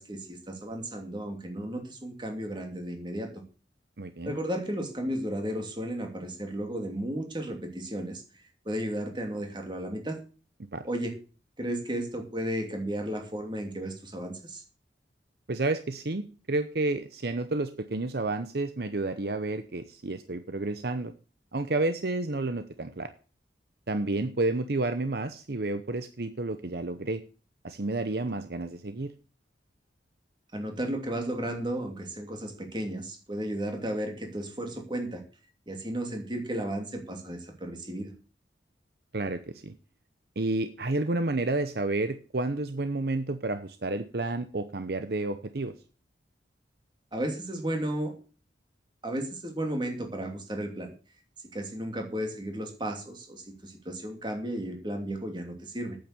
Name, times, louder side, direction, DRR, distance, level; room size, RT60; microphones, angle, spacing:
voice 1, 0.0-3.3 4.2-8.2 8.6-10.2 10.8-11.1 11.6-14.6 30.5-35.2 35.7-38.1 47.1-48.1 49.0-50.9 51.5-56.0, right 1 dB, 25° right, 3 dB, 2.8 m, -34 dB
voice 2, 4.0-4.3 10.7-10.8 15.5-21.1 21.5-23.1 23.9-27.2 27.6-29.1 39.1-39.7 40.4-45.7, right 2 dB, 60° right, 10 dB, 0.8 m, -30 dB
9.1 x 8.8 x 6.7 m, 0.36 s
head